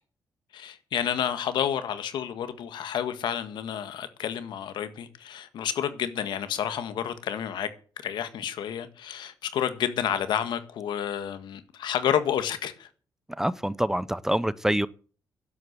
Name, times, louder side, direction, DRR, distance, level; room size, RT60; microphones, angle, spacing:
voice 1, 0.5-7.7 8.0-12.9, left 9 dB, 85° left, 1.6 m, -30 dB
voice 2, 13.4-14.9, right 1 dB, 5° right, 0.5 m, -26 dB
11.0 x 8.3 x 8.0 m
cardioid pair, 125°, 8 cm